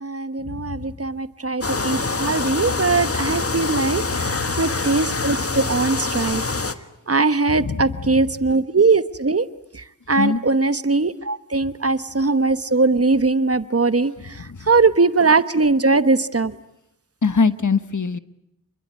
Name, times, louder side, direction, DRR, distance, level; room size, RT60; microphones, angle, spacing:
voice 1, 0.0-4.0 4.6-6.4 7.1-9.4 10.1-14.1 14.7-16.5, right 3 dB, 50° right, 14 dB, 1.2 m, -20 dB
sound 1, 1.6-6.7, left 3 dB, 45° left, 1.6 m, -25 dB
voice 2, 7.5-8.3 10.2-10.4 14.5-14.6 17.2-18.2, left 5 dB, 70° left, 13 dB, 1.3 m, -22 dB
27.5 x 22.0 x 9.6 m, 0.80 s
wide cardioid pair, 60°, 32 cm